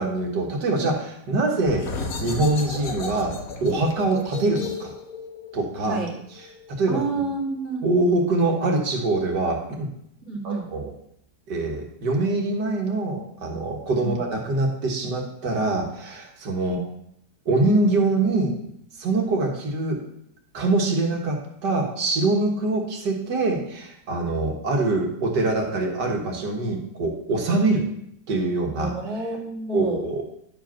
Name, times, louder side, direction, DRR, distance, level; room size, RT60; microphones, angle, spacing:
voice 1, 0.0-1.9 2.2-3.3 3.6-4.9 5.5-6.0 6.8-7.0 7.8-9.9 10.4-10.9 11.5-16.8 17.5-18.5 19.0-20.0 20.5-27.9 28.3-28.9 29.7-30.2, right 2 dB, 85° right, 1 dB, 2.1 m, -24 dB
sound 1, 1.6-7.0, left 4 dB, 60° left, 1.5 m, -34 dB
voice 2, 5.8-6.1 6.9-7.9 10.3-10.7 14.0-14.2 16.6-16.8 28.8-30.1, right 3 dB, 40° right, -3 dB, 2.4 m, -29 dB
10.5 x 5.0 x 5.9 m, 0.74 s
omnidirectional pair, 1.8 m